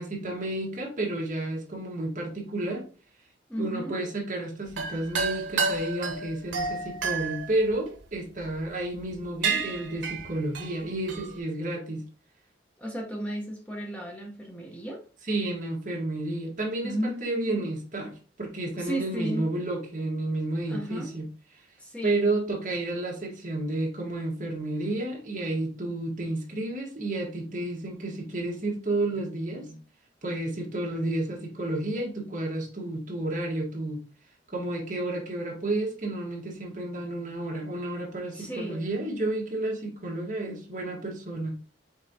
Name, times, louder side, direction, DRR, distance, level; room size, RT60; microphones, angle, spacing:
voice 1, 0.0-2.9 3.6-12.0 15.3-18.1 18.4-21.3 22.0-29.8 30.2-34.0 34.5-41.5, right 2 dB, 45° right, 1.4 m, -31 dB
voice 2, 3.5-4.0 12.8-15.0 16.8-17.7 18.8-19.5 20.7-21.2 21.8-22.3 38.3-38.8, equal, 5° left, 0.7 m, -34 dB
sound 1, 4.7-8.4 9.0-9.1 9.4-11.3, right 4 dB, 85° right, 0.8 m, -30 dB
5.3 x 3.8 x 2.7 m
head